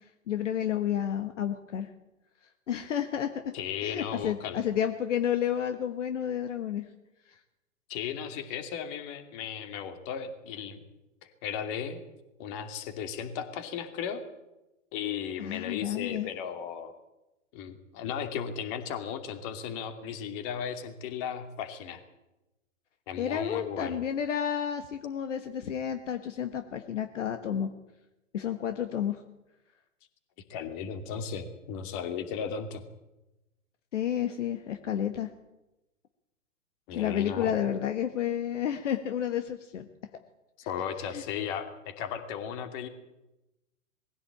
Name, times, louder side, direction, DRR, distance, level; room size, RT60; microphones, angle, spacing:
voice 1, 0.3-1.9 2.7-3.3 3.8-6.9 7.3-7.4 15.4-16.3 23.2-27.7 28.3-29.2 33.9-35.3 36.9-39.9 41.1-41.2, left 9 dB, 65° left, 8 dB, 1.5 m, -31 dB
voice 2, 3.5-4.7 7.9-10.8 11.4-12.0 12.4-14.2 14.9-16.9 17.5-22.0 23.1-24.0 30.5-32.8 36.9-37.6 40.7-42.9, left 7 dB, 40° left, 8 dB, 2.7 m, -36 dB
20.5 x 15.5 x 8.7 m, 0.99 s
figure-of-eight pair, 115°, 39 cm